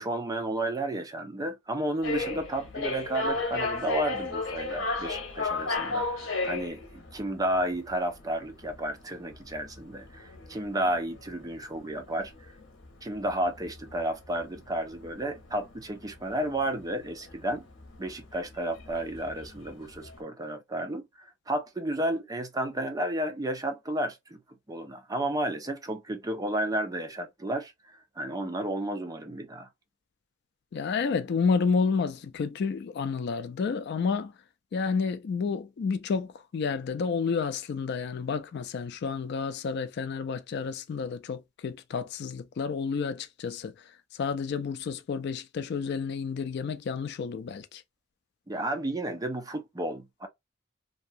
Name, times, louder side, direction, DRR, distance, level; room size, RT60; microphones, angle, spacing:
voice 1, 0.0-12.3 13.0-17.7 18.0-21.0 21.5-24.4 24.7-29.7 48.5-50.3, right 1 dB, 20° right, 0.5 m, -32 dB
sound 1, 2.0-20.2, left 3 dB, 75° left, 0.9 m, -35 dB
voice 2, 30.7-34.3 34.7-43.7 44.2-47.8, left 5 dB, 55° left, 0.3 m, -30 dB
2.7 x 2.3 x 2.5 m
head